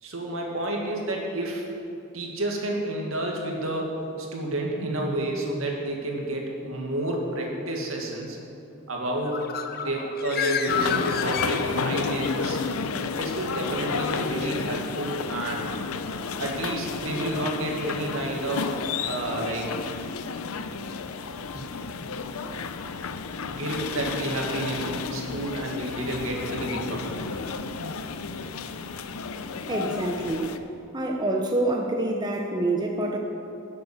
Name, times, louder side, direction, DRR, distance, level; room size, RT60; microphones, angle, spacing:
voice 1, 0.0-1.7 2.1-8.4 8.9-9.5 9.8-12.6 13.2-15.7 16.4-18.7 19.0-19.9 21.5-21.7 23.5-27.3, right 1 dB, 75° right, 0 dB, 2.1 m, -30 dB
Bird, 9.1-12.1, left 7 dB, 45° left, 0.7 m, -30 dB
sound 1, 10.7-30.6, left 5 dB, 90° left, 0.6 m, -32 dB
voice 2, 29.7-30.6 30.9-33.2, right 2 dB, 20° right, 1 dB, 0.8 m, -26 dB
12.0 x 7.8 x 7.3 m, 2.7 s
head